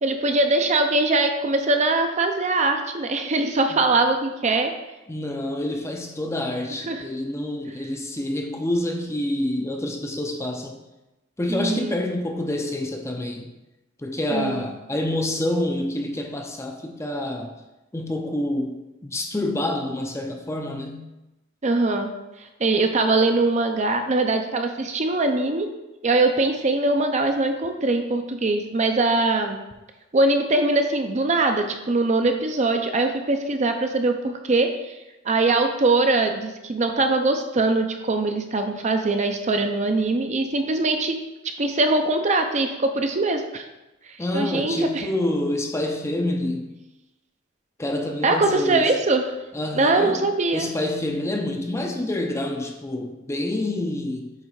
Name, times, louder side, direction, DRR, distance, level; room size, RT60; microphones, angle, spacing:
voice 1, 0.0-4.7 6.9-7.0 11.5-12.0 14.3-14.7 21.6-22.1 22.6-25.7 26.0-29.6 30.1-34.9 35.3-41.2 41.6-43.6 44.3-45.0 48.2-49.2 49.7-50.7, right 2 dB, 35° right, 6 dB, 0.5 m, -22 dB
voice 2, 5.1-10.8 11.4-13.5 14.0-17.5 17.9-21.1 44.2-46.7 47.8-49.0 49.5-50.3 50.5-54.3, left 1 dB, 15° left, 3 dB, 0.5 m, -27 dB
8.2 x 3.3 x 4.7 m, 1.0 s
head